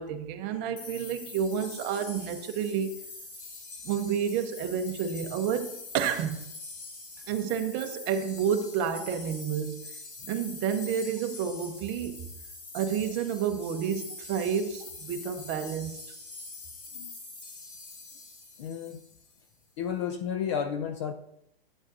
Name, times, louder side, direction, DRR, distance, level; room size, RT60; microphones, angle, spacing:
voice 1, 0.0-2.9 3.8-6.4 7.3-9.8 10.3-12.3 12.7-16.0, right 7 dB, 30° right, 0.9 m, -30 dB
sound 1, 0.8-19.4, left 3 dB, 60° left, 3.0 m, -44 dB
voice 2, 18.6-19.0 19.8-21.1, left 8 dB, 30° left, 0.4 m, -32 dB
11.5 x 9.0 x 2.6 m
hypercardioid pair, 145°, 31 cm